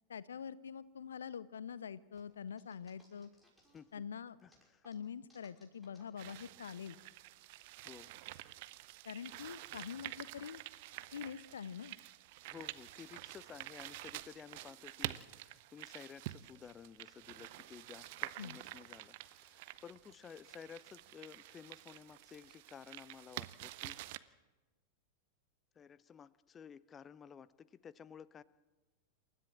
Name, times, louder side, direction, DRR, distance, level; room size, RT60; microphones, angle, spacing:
voice 1, 0.1-3.3 3.9-4.4 4.8-7.0 9.0-10.6 11.1-11.9 18.4-18.6, left 7 dB, 70° left, 19 dB, 0.6 m, -45 dB
sound 1, 2.1-4.0 4.4-7.6, left 1 dB, ahead, 6.2 m, -69 dB
voice 2, 4.4-4.8 7.8-8.2 12.5-24.0 25.7-28.4, left 7 dB, 20° left, 18 dB, 0.7 m, -54 dB
sound 2, 6.2-24.2, right 17 dB, 50° right, 0.7 m, -48 dB
28.0 x 13.5 x 7.5 m, 1.2 s
figure-of-eight pair, 90°, 0 cm